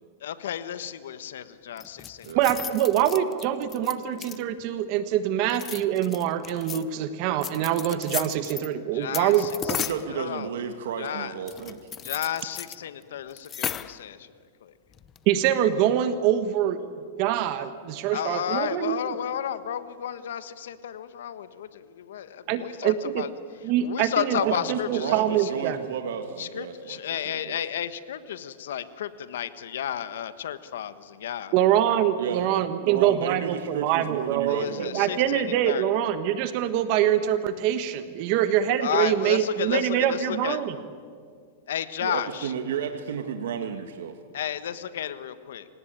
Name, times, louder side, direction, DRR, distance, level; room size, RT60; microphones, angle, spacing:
voice 1, 0.2-2.3 8.5-8.6 8.9-10.5 11.0-11.3 12.0-14.3 14.6-14.7 18.1-23.3 23.8-25.5 26.4-31.5 34.5-35.8 38.8-40.6 41.7-42.5 44.3-45.7, left 10 dB, 85° left, 13 dB, 1.4 m, -32 dB
sound 1, 1.8-4.6 5.4-6.8 7.4-8.7 9.1-10.1 11.5-12.8 13.0-13.1 13.3-14.0 14.9-15.3, left 9 dB, 20° left, 0.7 m, -35 dB
voice 2, 2.3-9.8 15.3-16.8 17.2-19.1 22.5-23.2 23.6-24.4 24.7-25.9 31.5-40.7, right 11 dB, 45° right, 11 dB, 1.3 m, -24 dB
voice 3, 9.8-11.9 24.3-27.0 27.2-27.6 32.2-35.2 38.3-38.5 42.0-44.2, right 7 dB, 80° right, 6 dB, 1.7 m, -33 dB
26.5 x 18.5 x 9.1 m, 2.1 s
supercardioid pair, 150°, 0 cm